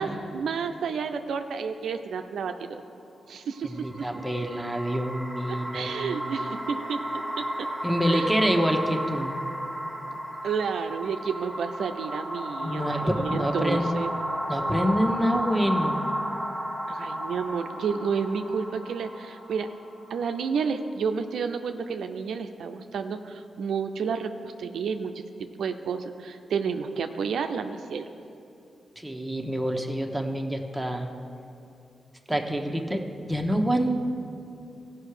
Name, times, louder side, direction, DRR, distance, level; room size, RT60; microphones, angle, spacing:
voice 1, 0.0-2.8 3.3-4.1 5.5-7.0 7.4-7.7 8.1-8.4 10.1-10.2 10.4-14.1 16.9-19.7 20.1-28.1, right 6 dB, 80° right, 7 dB, 0.5 m, -31 dB
voice 2, 3.6-6.6 7.8-9.4 12.6-13.9 14.5-16.0 29.0-31.1 32.3-34.0, equal, 5° right, 2 dB, 1.1 m, -27 dB
sound 1, 3.7-20.8, equal, 15° left, 1.3 m, -33 dB
15.5 x 5.7 x 4.9 m, 2.6 s
cardioid pair, 60°, 0 cm